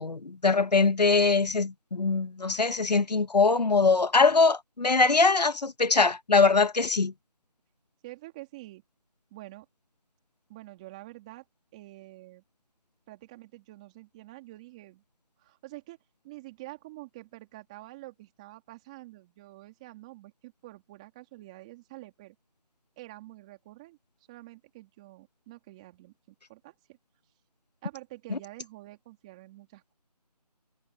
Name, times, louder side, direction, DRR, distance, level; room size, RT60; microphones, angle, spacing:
voice 1, 0.0-7.1 28.3-28.4, left 4 dB, 75° left, 1.5 m, -22 dB
voice 2, 8.0-8.8 9.3-9.7 10.5-11.4 11.7-12.4 13.1-15.0 15.4-16.0 16.2-22.4 23.0-24.0 24.3-27.0 27.8-29.9, right 19 dB, 10° right, 3.2 m, -47 dB
figure-of-eight pair, 175°, 21 cm